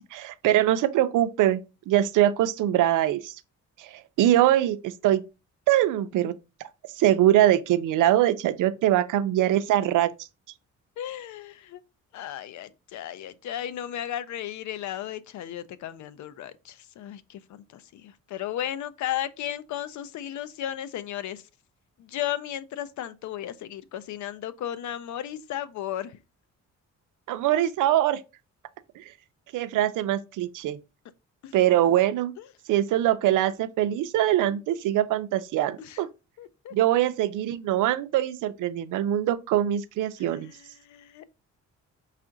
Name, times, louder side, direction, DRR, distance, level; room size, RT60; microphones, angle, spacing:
voice 1, 0.1-1.6 1.9-3.4 3.8-5.2 5.7-6.3 7.0-10.1 27.3-28.2 29.0-29.1 29.5-30.8 31.5-32.3 32.7-36.1 36.7-40.5, right 13 dB, 90° right, 0.5 m, -23 dB
voice 2, 11.0-11.8 12.1-21.4 22.0-26.2 31.4-31.5 35.8-36.0 36.4-36.7 40.2-41.4, left 11 dB, 70° left, 0.5 m, -35 dB
5.5 x 2.5 x 3.8 m
cardioid pair, 125°, 30 cm